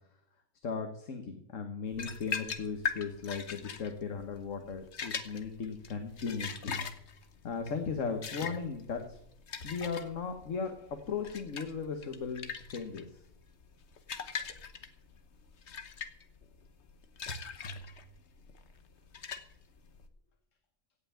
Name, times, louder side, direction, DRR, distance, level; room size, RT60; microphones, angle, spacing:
voice 1, 0.6-6.8 7.4-9.2 9.6-13.2, left 5 dB, 85° left, 5 dB, 1.6 m, -37 dB
sound 1, 1.9-20.1, left 5 dB, 65° left, 1.4 m, -41 dB
17.0 x 5.8 x 8.6 m, 0.74 s
omnidirectional pair, 1.3 m